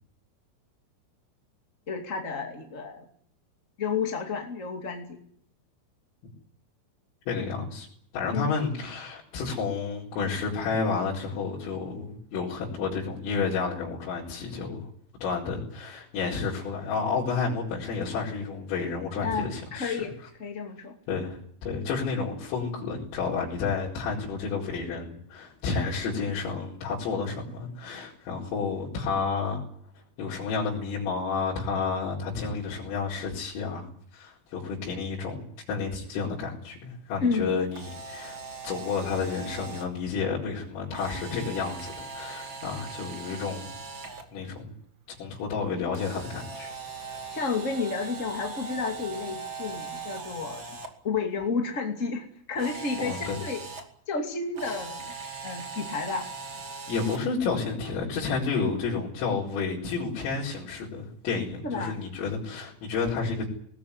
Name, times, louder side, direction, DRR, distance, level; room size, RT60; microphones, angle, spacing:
voice 1, 1.9-3.0 3.8-5.2 8.3-8.6 19.2-20.1 20.4-20.9 37.2-37.5 47.3-50.6 51.0-53.6 54.1-55.1 55.4-56.3 61.6-62.0, left 4 dB, 30° left, 3 dB, 1.3 m, -31 dB
voice 2, 7.3-7.9 8.1-14.9 15.2-20.0 21.1-29.6 30.2-38.4 38.6-43.7 44.3-44.7 45.2-46.7 47.1-47.4 53.0-53.4 56.9-63.5, left 5 dB, 80° left, -7 dB, 7.1 m, -31 dB
Camera, 37.6-39.8 40.9-44.2 45.9-50.9 52.5-53.8 54.5-57.2, right 4 dB, 35° right, 2.0 m, -40 dB
20.0 x 19.5 x 9.8 m, 0.64 s
omnidirectional pair, 5.8 m